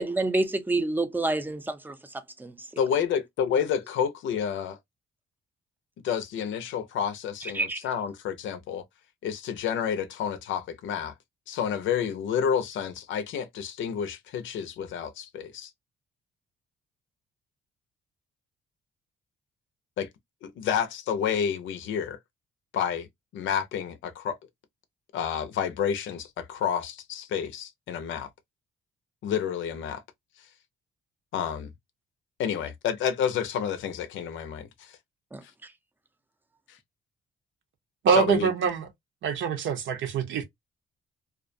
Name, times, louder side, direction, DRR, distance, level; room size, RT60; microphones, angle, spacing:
voice 1, 0.0-2.6 7.4-7.8 35.3-35.4, right 2 dB, 10° right, 0.5 m, -28 dB
voice 2, 2.8-4.8 6.0-8.8 9.2-11.1 11.5-15.7 20.0-20.1 20.4-22.2 22.7-23.1 23.3-24.4 25.1-28.3 29.2-30.0 31.3-31.7 32.4-35.0 38.1-38.5, left 8 dB, 75° left, 0.5 m, -29 dB
voice 3, 38.0-38.9 39.2-40.4, right 7 dB, 70° right, 0.8 m, -24 dB
2.4 x 2.2 x 2.5 m
cardioid pair, 90°, 20 cm